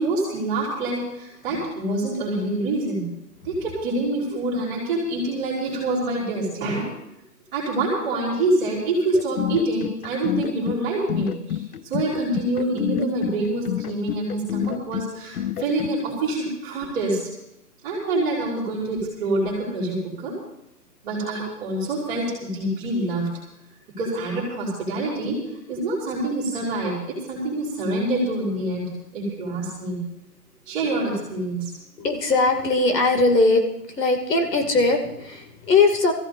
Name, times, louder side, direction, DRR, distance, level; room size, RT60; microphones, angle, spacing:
voice 1, 0.0-3.0 3.4-6.9 7.5-17.2 17.8-20.3 21.0-23.3 24.0-25.4 25.7-30.0 30.7-31.7, right 2 dB, 10° right, -7 dB, 2.8 m, -26 dB
sound 1, 9.1-16.0, left 11 dB, 65° left, 0.6 m, -29 dB
voice 2, 32.0-36.1, left 3 dB, 85° left, 6 dB, 2.6 m, -20 dB
23.0 x 14.5 x 2.6 m, 0.84 s
hypercardioid pair, 175°, 48 cm